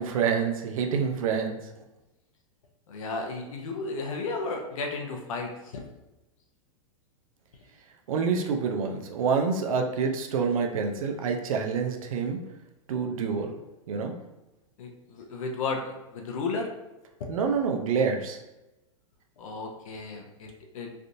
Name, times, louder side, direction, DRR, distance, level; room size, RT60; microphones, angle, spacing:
voice 1, 0.0-1.6 8.1-12.4 12.9-13.6 13.9-14.1 17.3-18.4, right 5 dB, 80° right, 4 dB, 0.6 m, -27 dB
voice 2, 2.9-5.8 14.8-16.7 19.4-20.9, left 3 dB, 70° left, 2 dB, 0.7 m, -34 dB
3.4 x 2.6 x 2.6 m, 0.99 s
hypercardioid pair, 125°, 18 cm